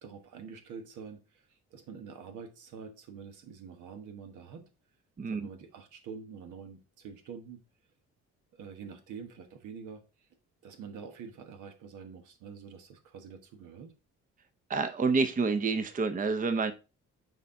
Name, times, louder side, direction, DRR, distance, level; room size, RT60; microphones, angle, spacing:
voice 1, 0.0-4.7 5.3-7.6 8.5-10.3 10.6-13.9, right 6 dB, 80° right, 1.3 m, -46 dB
voice 2, 5.2-5.5 14.7-16.7, right 4 dB, 25° right, 0.7 m, -28 dB
6.6 x 4.1 x 3.7 m
cardioid pair, 90°, 30 cm